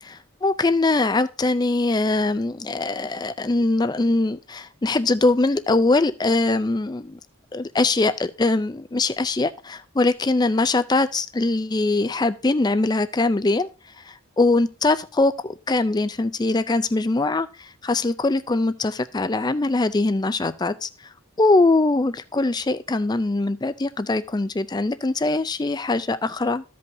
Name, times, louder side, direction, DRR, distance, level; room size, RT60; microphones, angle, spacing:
voice 1, 0.0-7.2 7.5-13.7 14.0-20.9 21.4-26.6, left 2 dB, 20° left, 13 dB, 0.4 m, -22 dB
14.5 x 5.4 x 2.6 m, 0.31 s
head